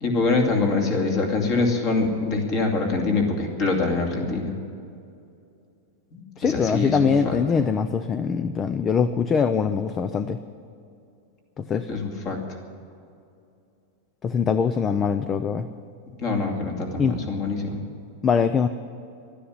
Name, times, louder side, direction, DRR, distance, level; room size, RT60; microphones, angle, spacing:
voice 1, 0.0-4.5 6.1-7.4 11.9-12.4 16.2-17.8, left 3 dB, 35° left, 1 dB, 2.5 m, -24 dB
voice 2, 6.4-10.4 11.6-11.9 14.2-15.7 17.0-17.1 18.2-18.7, left 6 dB, 20° left, 11 dB, 0.4 m, -22 dB
12.5 x 10.0 x 9.6 m, 2.5 s
supercardioid pair, 155°, 0 cm